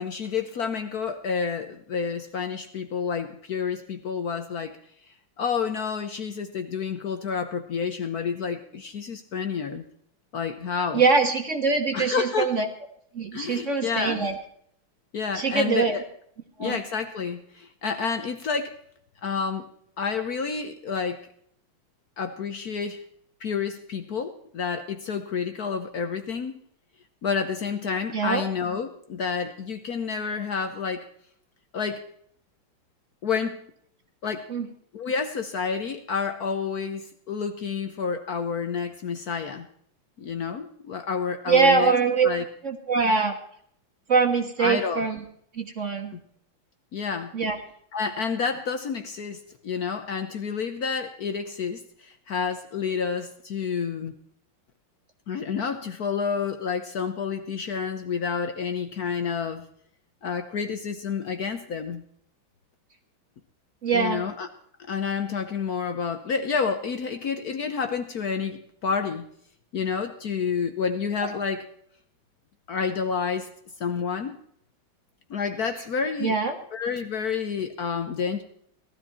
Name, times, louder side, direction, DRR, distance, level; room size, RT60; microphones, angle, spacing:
voice 1, 0.0-4.8 5.4-9.8 10.3-11.0 11.9-12.5 13.3-14.2 15.1-16.0 16.6-18.7 19.2-19.7 20.0-21.2 22.2-23.0 23.4-26.5 27.2-31.1 31.7-32.1 33.2-33.6 34.2-34.5 34.9-39.7 40.2-41.9 42.2-42.4 44.6-45.0 46.9-47.3 47.9-54.1 55.3-59.7 60.2-62.0 63.9-64.5 64.9-69.2 69.7-71.7 72.7-73.5 73.8-74.4 75.3-76.4 76.7-78.4, left 6 dB, 55° left, 7 dB, 1.3 m, -29 dB
voice 2, 10.9-12.7 13.1-14.4 15.3-16.0 16.6-16.8 28.1-28.4 34.5-34.7 41.5-42.3 42.6-43.4 44.1-45.2 45.5-46.1 47.3-47.6 63.8-64.2 71.2-71.3 76.2-76.5, right 4 dB, 40° right, 5 dB, 1.8 m, -23 dB
17.5 x 13.0 x 4.3 m, 0.66 s
omnidirectional pair, 2.2 m